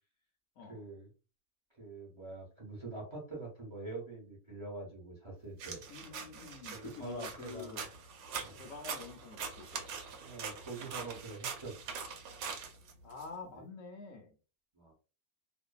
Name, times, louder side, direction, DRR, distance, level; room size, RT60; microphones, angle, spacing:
voice 1, 0.7-1.1 1.8-5.8 6.8-7.8 8.4-8.6 10.2-11.8 14.7-14.9, right 3 dB, 25° right, -3 dB, 0.6 m, -45 dB
sound 1, 5.6-13.3, right 6 dB, 80° right, 1.2 m, -43 dB
voice 2, 5.9-7.9 8.6-9.9 13.0-14.4, left 5 dB, 65° left, 1 dB, 0.8 m, -47 dB
2.5 x 2.5 x 2.2 m, 0.34 s
omnidirectional pair, 1.7 m